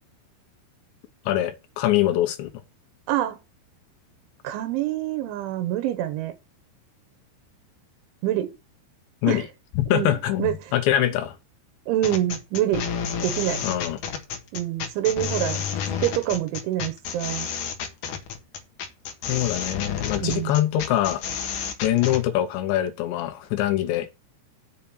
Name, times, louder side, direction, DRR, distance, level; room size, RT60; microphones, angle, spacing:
voice 1, 1.3-2.5 9.2-9.5 9.8-11.4 13.6-14.0 19.3-21.2 21.8-24.1, left 13 dB, 80° left, 3.3 m, -23 dB
voice 2, 3.1-3.4 4.4-6.3 8.2-8.5 9.3-9.5 9.9-10.7 11.0-11.1 11.9-12.9 13.2-13.6 14.5-15.6 16.0-17.5 20.2-20.6, right 13 dB, 90° right, 3.5 m, -26 dB
sound 1, 12.0-22.2, left 7 dB, 60° left, 2.5 m, -30 dB
7.4 x 5.6 x 7.1 m
omnidirectional pair, 5.3 m